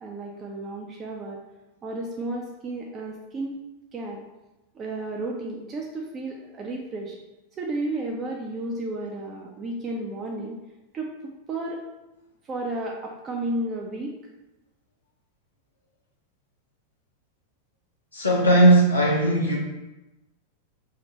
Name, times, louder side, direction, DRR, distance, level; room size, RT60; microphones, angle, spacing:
voice 1, 0.0-1.4 1.8-3.5 3.9-4.2 4.7-7.2 7.6-10.6 10.9-11.8 12.5-14.2, right 2 dB, 25° right, -1 dB, 0.4 m, -32 dB
voice 2, 18.1-19.6, right 1 dB, 80° left, -4 dB, 0.6 m, -18 dB
3.8 x 2.5 x 3.1 m, 1.0 s
figure-of-eight pair, 90°, 0 cm